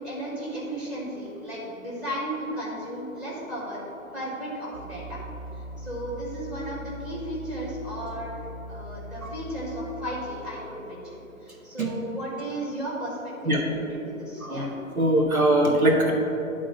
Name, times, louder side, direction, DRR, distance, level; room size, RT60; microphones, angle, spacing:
voice 1, 0.0-3.9 4.1-5.2 5.8-14.7, right 1 dB, ahead, -5 dB, 1.0 m, -35 dB
sound 1, 4.7-10.9, equal, 35° right, 1.9 m, -40 dB
voice 2, 15.0-16.1, right 1 dB, 80° right, -1 dB, 1.6 m, -21 dB
10.0 x 3.8 x 5.5 m, 3.0 s
figure-of-eight pair, 130°, 42 cm